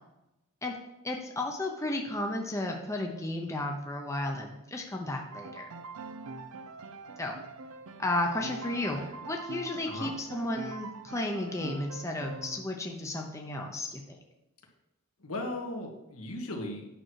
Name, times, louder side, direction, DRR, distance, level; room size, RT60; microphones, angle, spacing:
voice 1, 1.0-5.7 7.2-7.4 8.0-14.2, left 1 dB, 15° left, 1 dB, 0.8 m, -33 dB
Piano, 5.3-12.6, right 2 dB, 75° right, 0.7 m, -43 dB
voice 2, 15.2-16.9, left 1 dB, 75° left, 2 dB, 1.7 m, -37 dB
8.9 x 6.2 x 4.7 m, 0.92 s
head